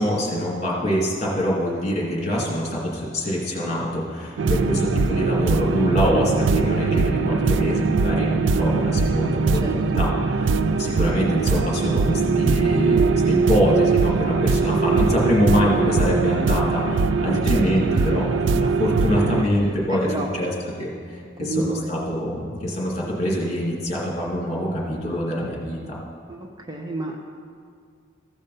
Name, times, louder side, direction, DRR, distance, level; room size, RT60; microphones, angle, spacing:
voice 1, 0.0-26.0, equal, 35° left, -4 dB, 2.3 m, -25 dB
sound 1, 4.4-19.4, right 4 dB, 70° right, 0.4 m, -21 dB
voice 2, 9.6-10.0 14.6-14.7 17.2-17.6 17.9-18.2 19.9-20.3 21.4-21.9 26.3-27.2, right 2 dB, 20° right, 2 dB, 0.6 m, -30 dB
14.5 x 5.4 x 5.4 m, 2.2 s
head